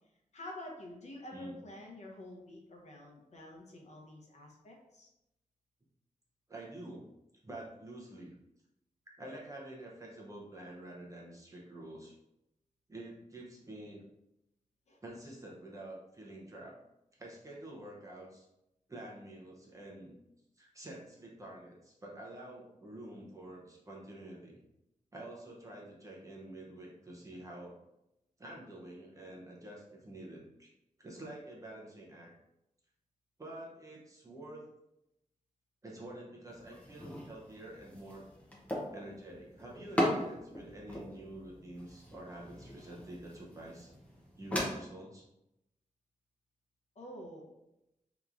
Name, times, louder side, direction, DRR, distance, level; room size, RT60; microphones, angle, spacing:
voice 1, 0.3-5.1 14.9-15.0 47.0-47.5, left 1 dB, 55° left, 0 dB, 0.7 m, -48 dB
voice 2, 6.5-7.1 7.4-8.3 9.2-12.1 12.9-14.0 15.0-16.8 17.2-18.5 18.9-20.1 20.6-24.6 25.1-27.8 28.4-30.7 31.0-32.3 33.4-34.6 35.8-38.2 38.9-43.9 44.4-45.2, right 1 dB, 25° right, -4 dB, 0.7 m, -48 dB
sound 1, 36.5-44.7, equal, 10° left, 0.7 m, -39 dB
3.6 x 2.9 x 2.5 m, 0.87 s
wide cardioid pair, 180°, 14 cm